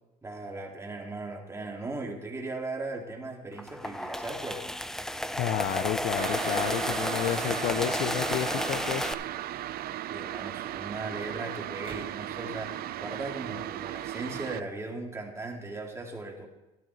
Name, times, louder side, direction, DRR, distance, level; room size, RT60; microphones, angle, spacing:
voice 1, 0.2-4.7 10.1-16.5, right 2 dB, 15° right, 0 dB, 2.3 m, -38 dB
sound 1, 3.6-9.1, equal, 5° left, 0.4 m, -32 dB
voice 2, 5.3-9.1, left 12 dB, 80° left, 14 dB, 0.6 m, -31 dB
sound 2, 6.2-14.6, right 12 dB, 65° right, 0.5 m, -36 dB
sound 3, 9.0-9.4 11.8-12.3, right 4 dB, 30° right, 1.7 m, -49 dB
13.5 x 12.5 x 3.2 m, 1.0 s
cardioid pair, 110°, 17 cm